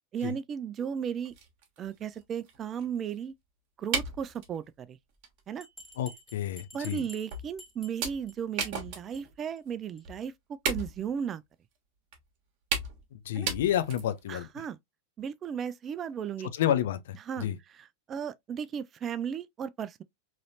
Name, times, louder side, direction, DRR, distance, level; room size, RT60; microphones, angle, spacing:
voice 1, 0.1-1.3 1.8-3.3 3.8-5.0 5.5-5.7 6.7-11.4 13.4-13.5 14.3-14.8 15.2-16.5 17.3-17.5 18.1-20.0, right 8 dB, 25° right, 0.3 m, -35 dB
sound 1, 0.9-1.0 1.2-3.1 3.9-4.6 5.2-5.4 5.8-5.9 6.6-6.7 7.3-7.6 8.0-9.3 9.7-9.8 10.0-10.2 10.6-11.2 12.1-12.2 12.7-13.1 13.5-14.2, right 5 dB, 45° right, 1.2 m, -35 dB
Bell, 5.6-8.3 8.6-8.8 9.1-9.2 9.6-9.7 10.0-10.1, left 1 dB, 10° left, 1.4 m, -50 dB
voice 2, 6.0-7.1 13.1-14.7 16.5-17.6, left 11 dB, 55° left, 0.5 m, -30 dB
3.8 x 3.1 x 2.7 m
figure-of-eight pair, 90°, 0 cm